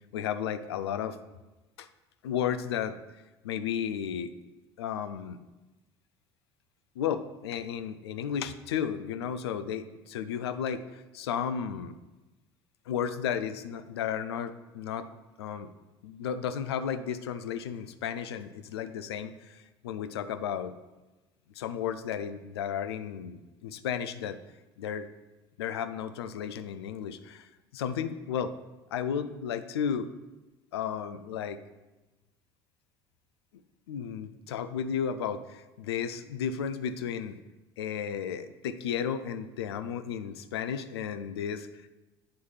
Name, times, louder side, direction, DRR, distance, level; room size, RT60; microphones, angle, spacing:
voice 1, 0.1-1.2 1.8-1.9 2.2-3.0 3.4-4.3 4.8-5.4 7.0-11.9 12.9-15.1 15.4-15.7 16.0-20.7 21.6-24.4 24.8-25.1 25.6-27.5 27.7-28.5 28.9-30.1 30.7-31.6 33.9-37.4 37.8-41.7, left 8 dB, 75° left, 11 dB, 0.5 m, -33 dB
8.6 x 3.2 x 5.6 m, 1.1 s
figure-of-eight pair, 65°, 14 cm